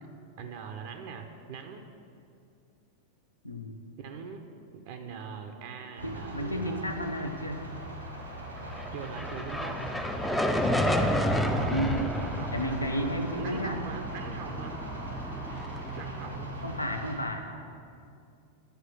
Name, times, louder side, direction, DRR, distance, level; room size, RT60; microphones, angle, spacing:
voice 1, 0.4-1.8 4.0-4.4 4.7-7.0 8.9-9.9 10.6-11.8 12.2-12.8 13.4-14.8 16.0-16.6, right 6 dB, 50° right, 5 dB, 0.6 m, -42 dB
voice 2, 3.4-3.8 6.0-7.6 11.7-12.2 12.5-13.8 16.6-17.5, equal, 85° left, 5 dB, 0.7 m, -32 dB
sound 1, 6.0-17.2, right 1 dB, 85° right, 1.4 m, -40 dB
sound 2, 8.4-16.8, equal, 5° left, 0.5 m, -31 dB
10.5 x 4.8 x 6.2 m, 2.5 s
figure-of-eight pair, 90°, 0 cm